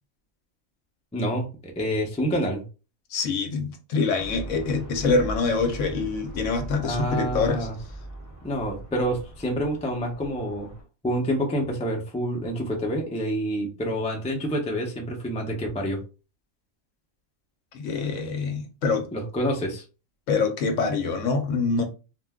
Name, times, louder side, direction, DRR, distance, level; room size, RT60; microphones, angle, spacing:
voice 1, 1.1-2.6 6.8-7.8 8.4-10.7 11.0-16.0 19.1-19.8, equal, 10° left, 0.3 m, -27 dB
voice 2, 3.1-7.7 17.7-19.1 20.3-21.8, left 4 dB, 70° left, 0.9 m, -25 dB
sound 1, 4.2-10.8, right 1 dB, 15° right, 1.0 m, -39 dB
2.5 x 2.1 x 3.4 m
omnidirectional pair, 1.4 m